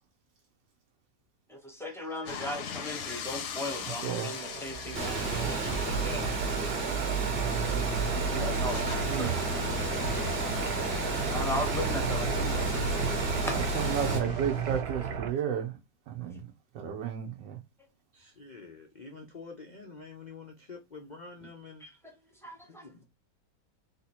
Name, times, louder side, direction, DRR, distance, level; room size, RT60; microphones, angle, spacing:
voice 1, 1.5-6.2 8.2-9.4 11.3-13.2 13.5-13.6 21.8-21.9 22.4-22.8, equal, 5° left, 0.4 m, -37 dB
sound 1, 2.3-14.8, left 7 dB, 60° left, 0.8 m, -43 dB
sound 2, 3.7-15.3, right 6 dB, 65° right, 1.3 m, -34 dB
voice 2, 4.8-5.4 7.4-8.5 18.1-21.9 22.7-23.0, left 4 dB, 75° left, 0.4 m, -48 dB
Water, 4.9-14.2, right 2 dB, 35° right, 1.2 m, -31 dB
voice 3, 13.5-15.7 16.1-17.6, right 9 dB, 90° right, 1.5 m, -33 dB
3.9 x 2.8 x 4.2 m
omnidirectional pair, 1.9 m